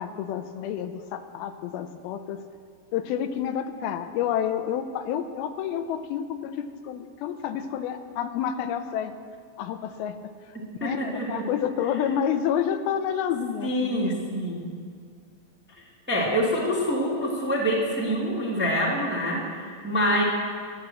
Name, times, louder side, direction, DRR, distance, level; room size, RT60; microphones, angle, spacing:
voice 1, 0.0-2.4 2.9-9.1 9.6-10.2 10.8-14.1, left 9 dB, 85° left, 9 dB, 2.5 m, -29 dB
voice 2, 10.8-11.4 13.6-14.7 16.1-20.2, equal, 5° right, -4 dB, 1.2 m, -26 dB
12.5 x 10.5 x 7.6 m, 2.1 s
omnidirectional pair, 4.4 m